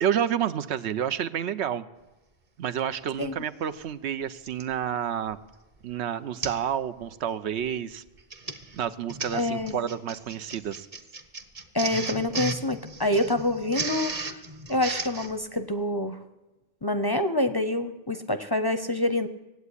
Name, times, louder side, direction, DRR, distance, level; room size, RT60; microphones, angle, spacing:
voice 1, 0.0-1.8 2.6-5.4 5.8-8.0 8.7-10.9, right 9 dB, 85° right, 12 dB, 1.0 m, -29 dB
Printer, 4.5-4.7 5.3-5.5 5.8-5.9 6.4-6.7 7.0-7.3 8.1-15.3, right 3 dB, 35° right, 1.0 m, -35 dB
voice 2, 9.3-9.8 11.7-14.3 14.7-16.2 16.8-19.3, left 1 dB, 25° left, 10 dB, 0.6 m, -26 dB
17.5 x 8.2 x 9.7 m, 1.1 s
omnidirectional pair, 1.1 m